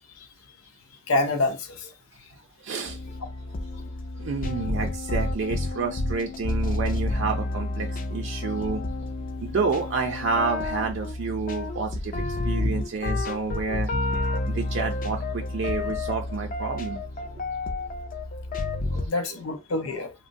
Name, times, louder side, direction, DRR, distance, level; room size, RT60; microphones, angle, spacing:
voice 1, 1.1-1.9 12.2-12.4 19.0-20.1, left 2 dB, 90° left, 0.6 m, -27 dB
voice 2, 2.6-3.0 4.2-8.8 9.4-13.9 14.5-17.0 18.8-19.1, right 4 dB, 60° right, 0.4 m, -29 dB
sound 1, 2.9-19.1, left 2 dB, 40° left, 0.4 m, -30 dB
2.9 x 2.1 x 2.5 m
head